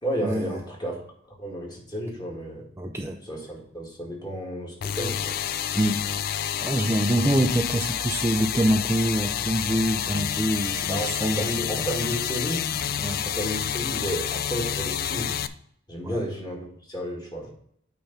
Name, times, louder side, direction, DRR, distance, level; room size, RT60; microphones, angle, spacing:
voice 1, 0.0-1.0 1.4-2.6 3.2-5.4 10.9-12.7 13.2-15.4 15.9-17.5, equal, 20° left, -2 dB, 1.9 m, -32 dB
voice 2, 2.8-3.2 5.7-6.0 6.6-11.4 13.0-13.2 16.0-16.2, right 1 dB, 15° right, 2 dB, 0.5 m, -25 dB
sound 1, 4.8-15.5, left 9 dB, 50° left, 0.4 m, -29 dB
8.8 x 3.4 x 5.6 m, 0.67 s
head